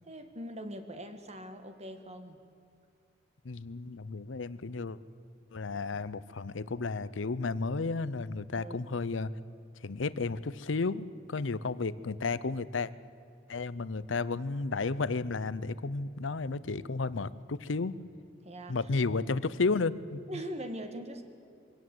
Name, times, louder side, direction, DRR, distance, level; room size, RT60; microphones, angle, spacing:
voice 1, 0.0-2.4 8.5-8.8 11.6-11.7 18.4-18.8 20.3-21.2, equal, 35° right, 7 dB, 1.7 m, -41 dB
voice 2, 3.4-5.0 5.5-9.3 9.8-12.9 13.5-17.9 18.7-20.2, left 4 dB, 75° left, 17 dB, 0.7 m, -32 dB
23.0 x 17.5 x 7.8 m, 2.5 s
head